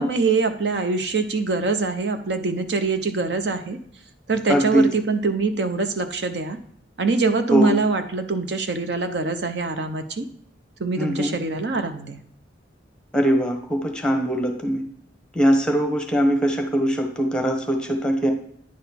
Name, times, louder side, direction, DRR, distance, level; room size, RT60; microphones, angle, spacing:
voice 1, 0.0-3.8 4.3-6.6 7.0-10.3 10.8-12.2, right 4 dB, 65° right, 8 dB, 0.7 m, -24 dB
voice 2, 4.5-4.9 7.5-7.8 11.0-11.4 13.1-14.8 15.3-18.3, equal, 5° left, 3 dB, 1.1 m, -21 dB
9.7 x 4.0 x 5.7 m, 0.68 s
head